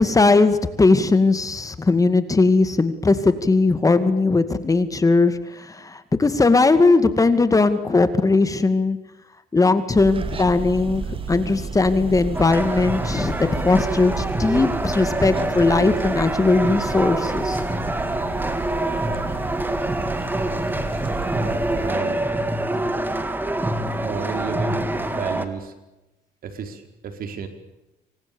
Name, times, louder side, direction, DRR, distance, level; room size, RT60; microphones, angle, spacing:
voice 1, 0.0-9.0 9.5-11.0 11.3-17.6, left 3 dB, 20° left, 11 dB, 2.3 m, -19 dB
sound 1, 9.9-21.9, right 5 dB, 30° right, 3.0 m, -32 dB
sound 2, 12.3-25.5, right 1 dB, 10° right, 3.2 m, -25 dB
voice 2, 21.3-22.2 24.0-25.7 26.4-27.5, right 6 dB, 60° right, 7 dB, 5.0 m, -33 dB
28.0 x 25.0 x 7.2 m, 0.97 s
cardioid pair, 110°, 17 cm